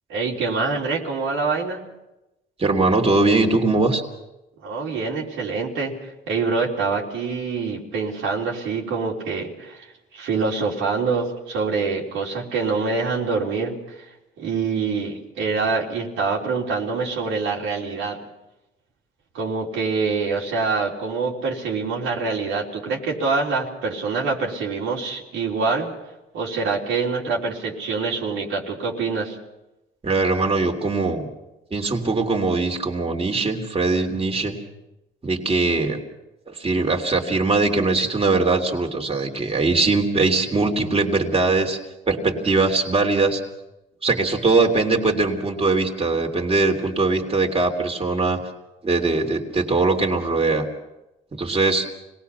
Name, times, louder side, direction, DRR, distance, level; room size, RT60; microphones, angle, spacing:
voice 1, 0.1-1.8 4.6-5.9 6.3-9.9 10.1-14.1 14.4-18.2 19.3-25.9 26.3-29.4, right 4 dB, 90° right, -3 dB, 3.6 m, -25 dB
voice 2, 2.6-4.0 30.0-31.3 31.7-34.6 35.2-36.0 36.5-41.8 42.1-43.4 44.0-48.4 48.8-50.6 51.3-51.9, right 3 dB, 30° right, 2 dB, 3.0 m, -21 dB
26.0 x 19.0 x 5.7 m, 0.95 s
cardioid pair, 90°, 20 cm